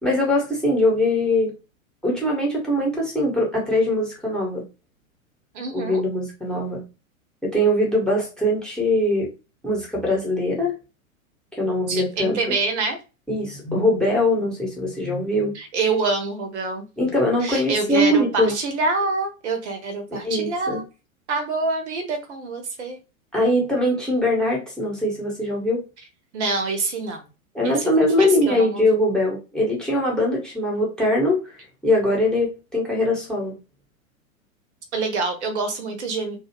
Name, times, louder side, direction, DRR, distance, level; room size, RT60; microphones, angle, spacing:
voice 1, 0.0-1.5 2.0-4.6 5.7-6.8 7.4-9.3 9.6-10.7 11.5-12.6 13.3-15.5 17.0-18.5 20.1-20.8 23.3-25.8 27.5-31.5 31.8-33.5, left 1 dB, ahead, -3 dB, 1.0 m, -22 dB
voice 2, 5.5-6.0 11.9-13.0 15.5-16.8 17.4-20.8 21.3-23.0 26.3-27.2 27.6-27.9 28.2-28.8 34.9-36.4, right 3 dB, 55° right, 5 dB, 0.9 m, -26 dB
2.7 x 2.4 x 2.9 m, 0.30 s
figure-of-eight pair, 95°, 42 cm